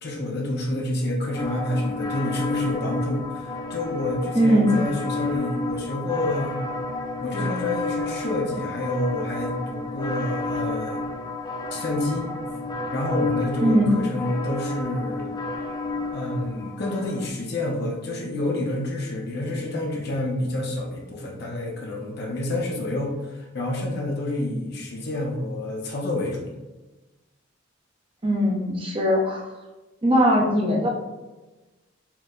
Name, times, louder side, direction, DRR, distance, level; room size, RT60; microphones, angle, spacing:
voice 1, 0.0-6.6 7.2-11.0 11.7-12.3 12.9-15.3 16.1-26.5, left 1 dB, 55° left, -1 dB, 0.7 m, -28 dB
sound 1, 1.3-17.3, left 2 dB, 20° left, 0.4 m, -31 dB
voice 2, 4.3-4.7 13.6-14.0 28.2-29.4 30.0-30.9, equal, 25° right, -2 dB, 0.7 m, -20 dB
4.5 x 2.1 x 3.7 m, 1.1 s
head